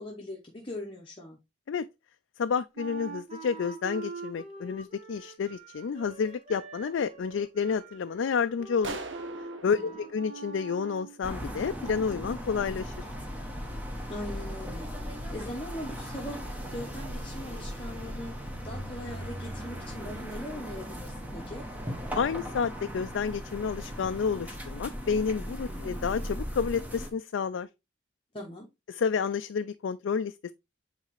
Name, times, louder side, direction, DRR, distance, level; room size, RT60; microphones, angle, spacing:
voice 1, 0.0-1.4 9.7-10.0 14.1-16.4 16.7-21.6 25.7-25.8 28.3-28.7, left 1 dB, 25° left, 1.0 m, -40 dB
voice 2, 2.4-9.0 9.6-13.1 22.2-27.7 28.9-30.5, left 6 dB, 80° left, 0.4 m, -30 dB
Wind instrument woodwind instrument, 2.7-11.2, right 5 dB, 35° right, 1.3 m, -44 dB
sound 1, 8.8-11.4, right 3 dB, 80° right, 1.0 m, -41 dB
sound 2, 11.2-27.1, equal, 10° right, 1.1 m, -38 dB
8.1 x 4.0 x 3.0 m
head